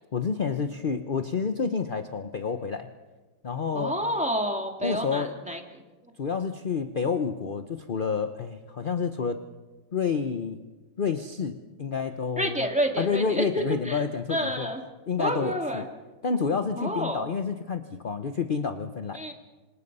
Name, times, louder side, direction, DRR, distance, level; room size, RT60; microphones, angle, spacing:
voice 1, 0.1-2.9 3.4-4.0 4.8-5.4 6.2-9.4 9.9-10.6 11.0-12.6 13.0-14.7 15.1-15.8 16.2-19.2, left 5 dB, 45° left, 7 dB, 0.6 m, -29 dB
voice 2, 3.7-5.6 12.4-14.0 14.3-14.8 15.2-15.8 16.8-17.2 19.1-19.3, equal, 5° right, 3 dB, 2.2 m, -29 dB
27.0 x 26.5 x 5.5 m, 1.3 s
omnidirectional pair, 2.1 m